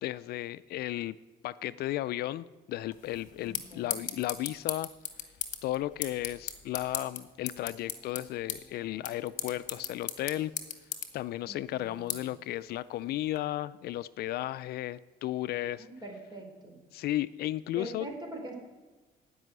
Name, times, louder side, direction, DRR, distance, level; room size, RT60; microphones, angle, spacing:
voice 1, 0.0-1.2 1.4-4.9 5.6-10.5 11.1-15.9 16.9-18.1, left 14 dB, 70° left, 16 dB, 0.4 m, -34 dB
sound 1, 2.9-13.4, left 8 dB, 50° left, 1.4 m, -39 dB
voice 2, 3.4-4.0 11.5-12.4 15.8-16.8 17.8-18.6, right 1 dB, 25° right, 2 dB, 3.6 m, -43 dB
Bowed string instrument, 6.2-11.6, equal, 55° right, 3.5 m, -62 dB
15.0 x 5.5 x 9.6 m, 1.2 s
cardioid pair, 110°, 17 cm